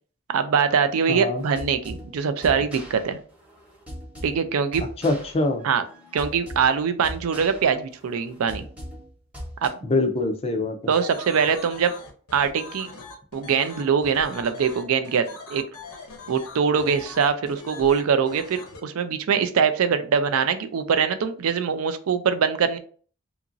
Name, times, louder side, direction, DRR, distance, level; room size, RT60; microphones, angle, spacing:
voice 1, 0.3-3.2 4.2-4.8 5.6-5.8 6.1-8.6 9.6-9.7 10.9-11.9 12.3-12.9 13.3-15.6 16.3-22.8, right 6 dB, 65° right, 10 dB, 0.4 m, -23 dB
voice 2, 1.1-1.4 5.0-5.6 9.8-10.9, left 2 dB, 25° left, 5 dB, 0.4 m, -24 dB
sound 1, 1.4-9.7, equal, 5° right, 0.9 m, -40 dB
sound 2, 10.9-18.8, left 3 dB, 85° left, 0.7 m, -42 dB
2.9 x 2.5 x 2.5 m, 0.44 s
head